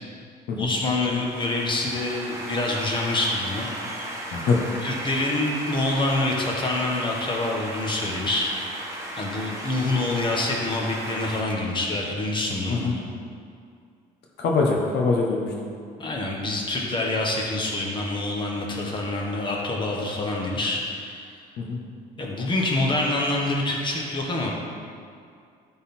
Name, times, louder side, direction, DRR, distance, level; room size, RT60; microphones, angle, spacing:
voice 1, 0.6-3.7 4.8-8.5 9.2-13.0 16.0-21.4 22.2-24.5, left 2 dB, 30° left, -2 dB, 1.5 m, -26 dB
sound 1, 0.7-11.4, right 1 dB, 15° right, 1.5 m, -36 dB
voice 2, 14.4-15.5 21.6-21.8, left 4 dB, 75° left, -1 dB, 1.1 m, -23 dB
11.5 x 4.1 x 4.4 m, 2.3 s
cardioid pair, 110°, 17 cm